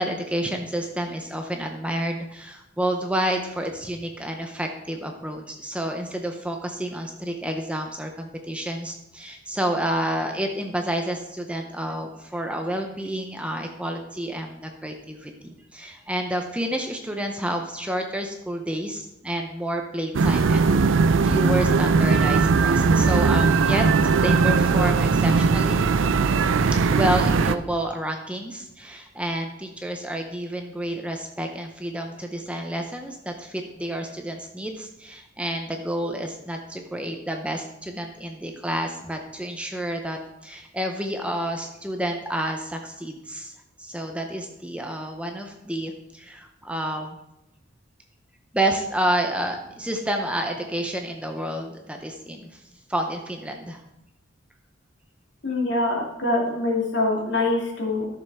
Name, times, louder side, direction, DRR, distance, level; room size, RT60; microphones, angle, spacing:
voice 1, 0.0-25.8 26.9-43.5 43.8-47.2 48.5-52.6 52.9-53.8, right 1 dB, 5° right, 4 dB, 0.6 m, -29 dB
sound 1, 20.1-27.6, right 4 dB, 80° right, 0.5 m, -19 dB
voice 2, 55.4-58.2, left 2 dB, 65° left, -1 dB, 2.4 m, -24 dB
13.0 x 6.8 x 3.5 m, 0.89 s
head